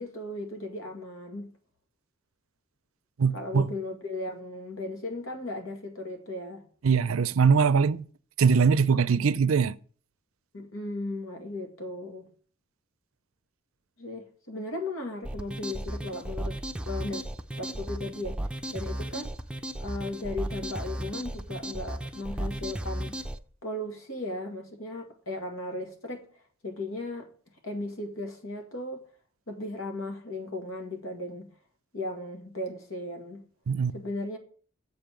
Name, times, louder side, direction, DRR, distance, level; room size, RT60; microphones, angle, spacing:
voice 1, 0.0-1.5 3.3-6.6 10.5-12.3 14.0-17.2 17.5-18.4 18.7-19.3 19.8-23.1 23.6-26.3 26.6-27.3 27.6-29.0 29.5-31.5 31.9-33.4 33.9-34.4, left 2 dB, 90° left, 2.0 m, -36 dB
voice 2, 3.2-3.7 6.8-8.0 8.4-9.7 33.7-33.9, right 5 dB, 80° right, 0.5 m, -22 dB
sound 1, 15.2-23.4, right 1 dB, 5° right, 0.5 m, -35 dB
7.7 x 5.3 x 7.5 m
head